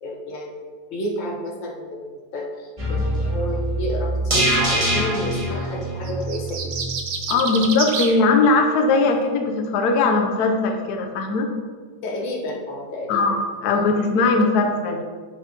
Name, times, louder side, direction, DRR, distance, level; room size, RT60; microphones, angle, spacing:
voice 1, 0.0-6.7 12.0-13.2, left 1 dB, 90° left, 0 dB, 2.0 m, -30 dB
sound 1, 2.8-7.0 7.3-7.4, right 1 dB, 20° right, 1.4 m, -24 dB
sound 2, 6.0-8.2, right 5 dB, 65° right, 1.4 m, -28 dB
voice 2, 7.3-11.5 13.1-15.0, left 3 dB, 65° left, 4 dB, 1.2 m, -19 dB
9.9 x 6.6 x 2.9 m, 1.5 s
omnidirectional pair, 2.0 m